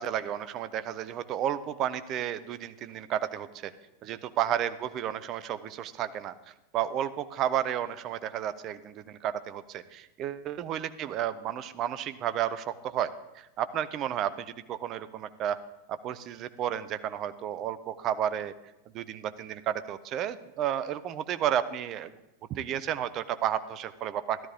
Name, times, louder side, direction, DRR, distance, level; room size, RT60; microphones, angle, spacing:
voice 1, 0.0-3.7 4.0-15.6 15.9-18.5 18.9-22.1 22.5-24.4, right 10 dB, 35° right, 13 dB, 0.6 m, -32 dB
13.5 x 12.0 x 3.6 m, 0.93 s
figure-of-eight pair, 90°, 0 cm